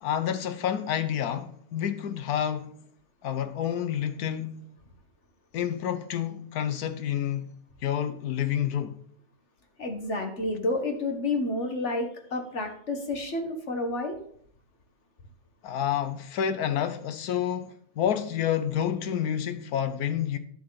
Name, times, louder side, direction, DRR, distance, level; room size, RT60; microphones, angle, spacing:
voice 1, 0.0-2.8 3.2-4.7 5.5-7.5 7.8-9.0 15.6-20.4, left 9 dB, 75° left, 1.3 m, -29 dB
voice 2, 9.8-14.2, left 2 dB, 50° left, 1.8 m, -30 dB
11.0 x 7.8 x 4.1 m
omnidirectional pair, 1.6 m